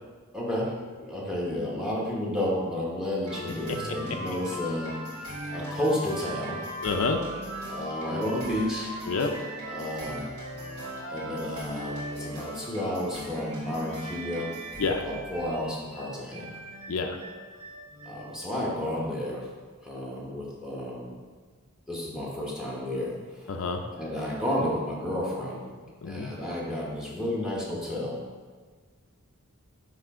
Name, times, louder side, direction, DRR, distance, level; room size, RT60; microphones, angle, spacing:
voice 1, 0.3-6.6 7.7-8.9 9.7-10.3 11.1-14.5 15.0-16.5 18.0-19.5 19.8-21.1 21.9-23.5 24.0-25.8 26.0-28.2, left 1 dB, 5° right, -4 dB, 1.1 m, -31 dB
sound 1, 3.2-18.4, right 1 dB, 75° right, 1.8 m, -38 dB
voice 2, 6.8-7.2 9.1-9.3 14.8-15.0 16.9-17.2 23.5-23.8 26.0-26.3, left 4 dB, 70° left, 5 dB, 0.5 m, -28 dB
9.1 x 3.1 x 3.7 m, 1.5 s
head